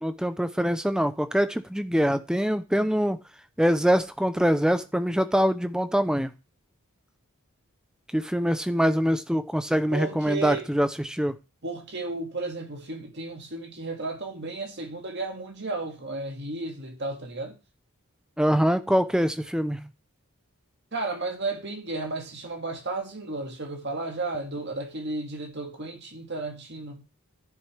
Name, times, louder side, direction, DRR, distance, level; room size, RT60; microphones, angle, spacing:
voice 1, 0.0-3.2 3.6-6.3 8.1-11.4 18.4-19.9, equal, 5° right, 0.6 m, -24 dB
voice 2, 9.9-10.7 11.6-17.6 20.9-27.0, right 3 dB, 55° right, 2.1 m, -33 dB
14.0 x 6.8 x 3.4 m
head